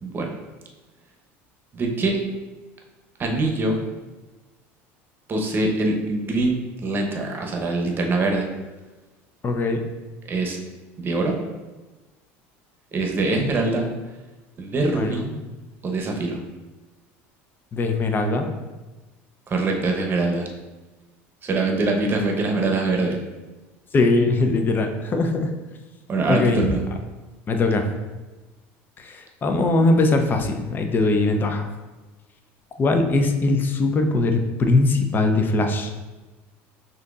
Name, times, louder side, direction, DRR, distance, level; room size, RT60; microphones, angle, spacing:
voice 1, 0.0-0.3 1.7-2.2 3.2-3.8 5.3-6.6 6.8-8.5 10.3-10.6 11.0-11.4 12.9-13.9 14.6-15.3 15.8-16.4 19.5-20.5 21.4-23.2 26.1-26.8, right 2 dB, 30° right, 2 dB, 0.8 m, -23 dB
voice 2, 9.4-9.8 14.9-15.3 17.7-18.5 23.9-25.5 26.3-26.6 27.5-27.9 29.0-31.7 32.8-35.9, left 2 dB, 30° left, 5 dB, 0.5 m, -21 dB
6.2 x 2.7 x 2.4 m, 1.2 s
supercardioid pair, 100°, 7 cm